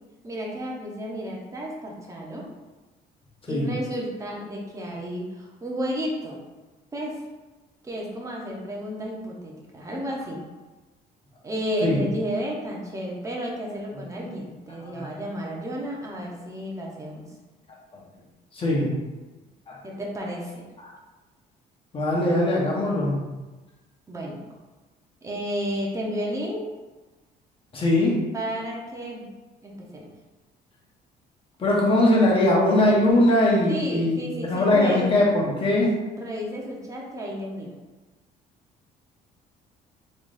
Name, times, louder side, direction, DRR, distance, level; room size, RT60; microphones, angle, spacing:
voice 1, 0.2-2.5 3.5-6.4 6.9-7.2 7.8-10.4 11.4-17.2 19.8-20.6 24.1-24.4 25.2-26.6 28.3-29.3 29.6-30.1 33.7-35.1 36.1-37.7, equal, 20° right, -2 dB, 0.8 m, -32 dB
voice 2, 18.5-18.9 19.7-19.8 21.9-23.3 27.7-28.1 31.6-35.9, left 1 dB, 30° left, -4 dB, 1.1 m, -21 dB
3.5 x 3.2 x 2.6 m, 1.2 s
cardioid pair, 110°, 17 cm